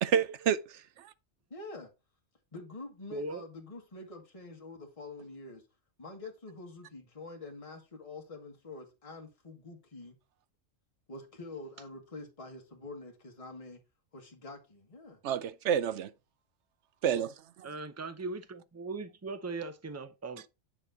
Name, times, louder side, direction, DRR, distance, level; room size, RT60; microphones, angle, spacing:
voice 1, 0.0-0.8 15.2-16.1 17.0-17.3, right 8 dB, 70° right, 0.9 m, -28 dB
voice 2, 1.5-1.9 2.5-5.6 6.0-10.1 11.1-13.8 14.1-15.2, left 2 dB, 25° left, 1.6 m, -46 dB
voice 3, 3.1-3.4 17.6-20.5, right 3 dB, 25° right, 0.4 m, -39 dB
8.8 x 4.4 x 3.9 m
omnidirectional pair, 1.3 m